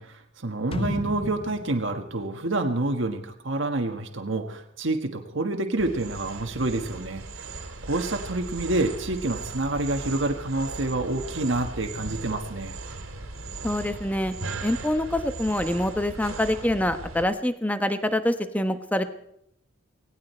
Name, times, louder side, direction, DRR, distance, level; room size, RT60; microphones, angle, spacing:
voice 1, 0.0-7.2 7.8-12.7, right 2 dB, 60° right, 4 dB, 1.5 m, -28 dB
sound 1, 0.7-3.5 3.8-3.9, left 2 dB, 25° left, 0.5 m, -35 dB
sound 2, 5.8-17.2, right 3 dB, 80° right, 2.5 m, -37 dB
voice 2, 13.6-14.3 14.6-19.0, left 1 dB, 5° left, 9 dB, 1.1 m, -25 dB
18.0 x 17.5 x 4.4 m, 0.73 s
head